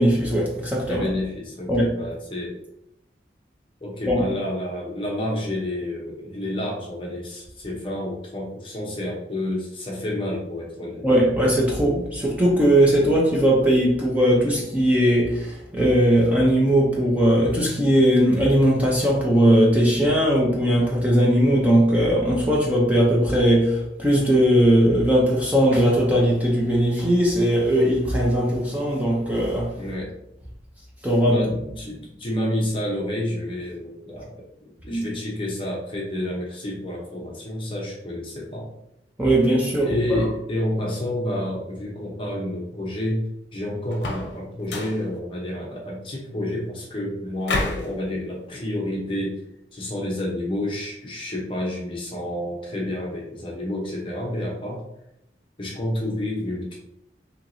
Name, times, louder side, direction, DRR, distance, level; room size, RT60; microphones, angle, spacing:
voice 1, 0.0-1.1 1.7-1.9 4.1-4.2 11.0-29.8 31.0-31.4 34.9-35.0 39.2-40.2, equal, 10° right, -3 dB, 0.6 m, -19 dB
voice 2, 0.9-2.6 3.8-11.1 29.8-30.1 31.3-34.3 34.8-38.7 39.8-49.4 49.7-54.8 55.6-56.8, left 1 dB, 30° left, -2 dB, 0.8 m, -29 dB
sound 1, 43.9-44.3 44.6-45.0 47.4-47.9, left 2 dB, 75° left, 0.7 m, -28 dB
4.4 x 2.9 x 2.6 m, 0.81 s
head